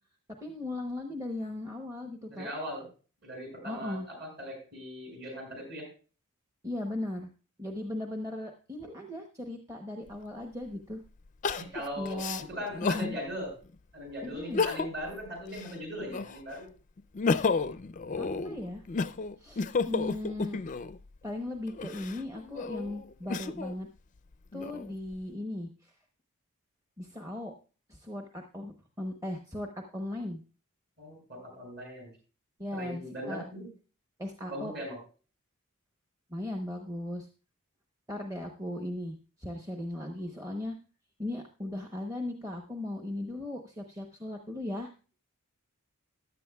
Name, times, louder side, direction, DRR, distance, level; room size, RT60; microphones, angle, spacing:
voice 1, 0.4-2.5 3.6-4.1 6.6-7.3 7.6-11.0 12.0-12.4 12.8-13.2 14.2-14.6 18.2-18.8 19.4-20.6 21.2-23.9 24.5-25.9 27.0-27.5 27.9-30.4 32.6-33.4 34.2-34.7 36.3-37.3 38.1-40.8 41.2-44.9, left 1 dB, 15° right, 3 dB, 0.9 m, -37 dB
voice 2, 2.3-2.9 3.2-5.9 8.8-8.9 11.6-12.2 12.5-13.5 13.9-16.7 31.0-32.1 32.7-33.7 34.5-35.0, equal, 50° right, 1 dB, 6.9 m, -39 dB
Crying sobbing, 10.1-10.2 11.4-13.1 13.6-13.7 14.4-15.1 15.5-16.5 17.0-21.0 21.7-23.8 24.3-25.1, left 4 dB, 35° left, 0.4 m, -32 dB
14.5 x 10.5 x 2.3 m, 0.36 s
head